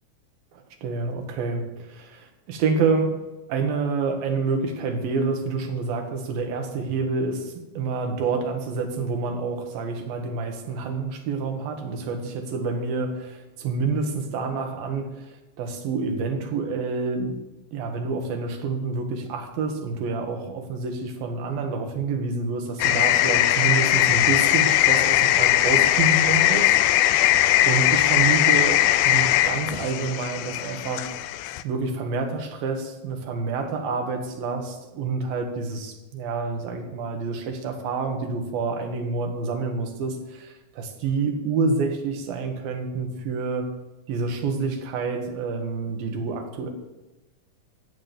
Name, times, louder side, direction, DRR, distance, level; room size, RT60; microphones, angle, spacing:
voice 1, 0.5-3.2 3.5-17.4 17.7-26.7 27.7-31.1 31.6-43.7 44.1-46.7, right 4 dB, 75° right, 5 dB, 3.3 m, -28 dB
sound 1, 22.8-31.6, left 14 dB, 85° left, 2.4 m, -20 dB
14.5 x 8.7 x 6.8 m, 1.1 s
omnidirectional pair, 4.2 m